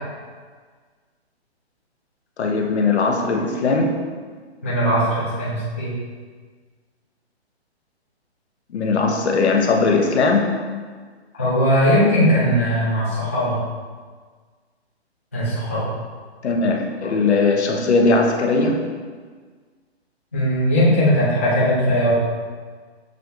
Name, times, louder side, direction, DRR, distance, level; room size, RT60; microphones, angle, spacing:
voice 1, 2.4-4.0 8.7-10.6 16.4-18.9, left 3 dB, 80° left, 2 dB, 0.8 m, -19 dB
voice 2, 4.6-5.9 11.3-13.6 15.3-15.9 20.3-22.1, equal, 15° left, -10 dB, 0.3 m, -19 dB
6.4 x 2.6 x 3.2 m, 1.5 s
hypercardioid pair, 150°, 33 cm